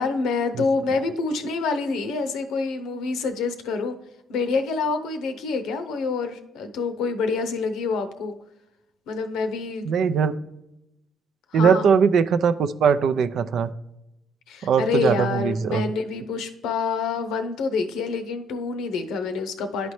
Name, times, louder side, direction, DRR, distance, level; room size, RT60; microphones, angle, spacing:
voice 1, 0.0-4.0 4.3-8.4 9.1-9.9 11.5-11.8 14.5-19.9, left 4 dB, 90° left, 8 dB, 0.7 m, -27 dB
voice 2, 9.8-10.3 11.5-13.7 14.6-15.8, right 6 dB, 70° right, 12 dB, 0.4 m, -20 dB
11.0 x 4.1 x 3.2 m, 0.86 s
cardioid pair, 90°, 0 cm